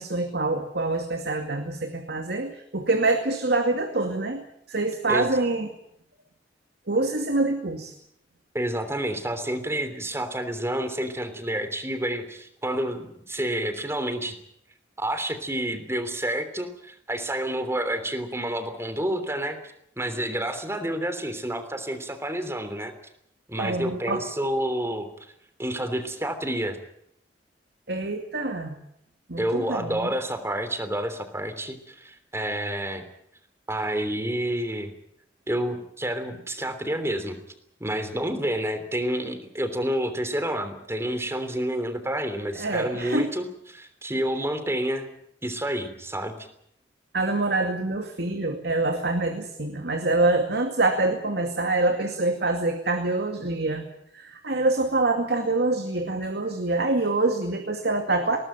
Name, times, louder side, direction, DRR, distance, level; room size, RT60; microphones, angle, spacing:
voice 1, 0.0-5.7 6.9-7.9 23.6-24.2 27.9-28.7 29.3-30.1 42.5-43.3 47.1-53.8 54.1-58.4, right 2 dB, 65° right, 5 dB, 2.4 m, -25 dB
voice 2, 8.5-14.4 15.0-19.6 20.0-22.9 23.5-25.1 25.6-26.8 29.4-33.0 33.7-34.9 35.5-37.4 37.8-45.1 45.4-46.5, right 1 dB, 15° right, 9 dB, 3.2 m, -29 dB
21.0 x 18.5 x 9.1 m, 0.72 s
head